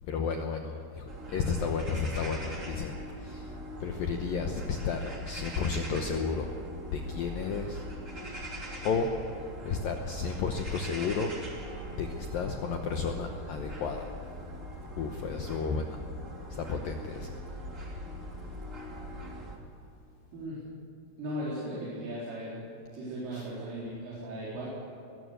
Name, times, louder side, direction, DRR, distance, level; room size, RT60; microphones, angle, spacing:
voice 1, 0.0-2.9 3.2-3.5 3.8-6.5 6.9-7.8 8.8-9.1 9.6-11.3 11.9-14.1 15.0-16.0 16.5-17.3 23.3-23.5, left 5 dB, 75° left, 4 dB, 2.1 m, -32 dB
sound 1, 1.1-19.6, equal, 20° right, 2.2 m, -42 dB
voice 2, 21.2-22.6 22.9-24.7, right 1 dB, 85° right, -8 dB, 6.6 m, -37 dB
22.5 x 16.0 x 8.1 m, 2.8 s
omnidirectional pair, 5.5 m